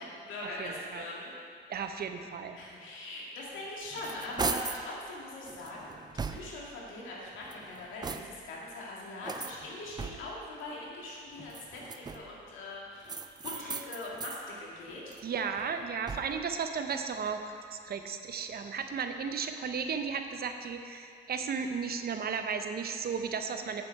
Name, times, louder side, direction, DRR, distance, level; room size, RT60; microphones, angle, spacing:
voice 1, 0.0-1.3 2.5-15.1, left 2 dB, 85° left, -4 dB, 2.0 m, -42 dB
voice 2, 0.6-1.0 1.7-2.6 15.2-17.4 17.7-23.8, right 6 dB, 50° right, 6 dB, 0.7 m, -34 dB
sound 1, 3.6-4.9 5.5-6.8 7.3-8.6 9.2-10.5 11.4-12.4 13.1-14.5 14.9-16.5, right 5 dB, 20° right, 0.4 m, -39 dB
8.4 x 6.9 x 4.6 m, 2.3 s
cardioid pair, 90°, 20 cm